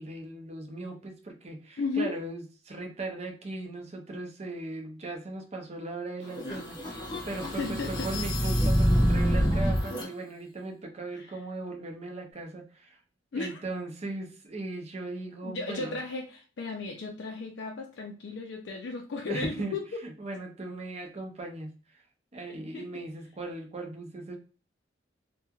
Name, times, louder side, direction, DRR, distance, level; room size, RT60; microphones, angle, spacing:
voice 1, 0.0-13.0 13.3-16.0 19.2-19.7 20.0-21.7 22.3-24.4, right 2 dB, 35° right, 3 dB, 0.5 m, -38 dB
voice 2, 1.8-2.2 7.6-8.1 11.1-11.4 13.3-13.6 15.4-19.9 22.3-22.9, left 3 dB, 65° left, 1 dB, 0.4 m, -35 dB
sound 1, 6.3-10.1, equal, 20° left, 0.6 m, -26 dB
3.0 x 2.2 x 2.3 m, 0.38 s
head